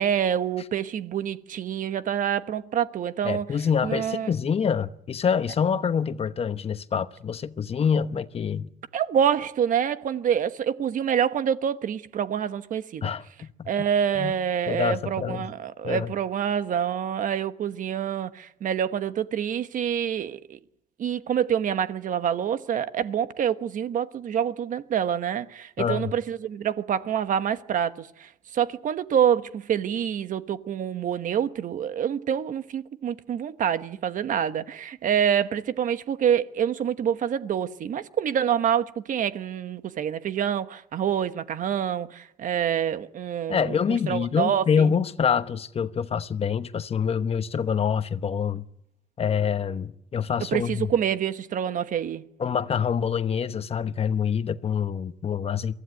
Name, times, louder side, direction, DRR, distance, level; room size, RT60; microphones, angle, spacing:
voice 1, 0.0-3.5 3.8-4.3 8.9-13.1 13.7-20.6 21.0-44.8 50.5-52.2, right 9 dB, 50° right, 1.2 m, -26 dB
voice 2, 3.2-8.7 13.0-13.7 14.2-14.3 14.7-15.5 15.8-16.1 25.8-26.1 43.5-48.6 49.2-50.9 52.4-55.7, left 7 dB, 35° left, 1.0 m, -26 dB
23.5 x 15.5 x 9.7 m
cardioid pair, 110°, 17 cm